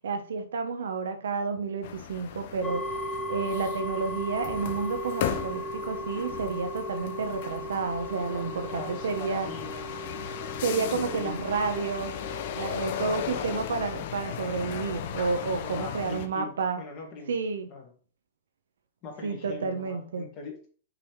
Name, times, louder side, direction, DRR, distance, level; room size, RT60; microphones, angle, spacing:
voice 1, 0.0-2.9 3.3-9.5 10.6-12.1 12.6-16.8 17.3-17.7 19.2-20.3, right 4 dB, 85° right, 0.9 m, -30 dB
sound 1, 1.8-16.3, left 10 dB, 55° left, 0.6 m, -37 dB
sound 2, 2.6-13.4, equal, 5° left, 0.4 m, -37 dB
voice 2, 8.3-9.9 10.9-11.4 13.3-13.7 15.5-17.4 17.7-17.9 19.0-20.6, left 4 dB, 35° left, 2.1 m, -41 dB
5.9 x 3.5 x 4.5 m
hypercardioid pair, 140°, 0 cm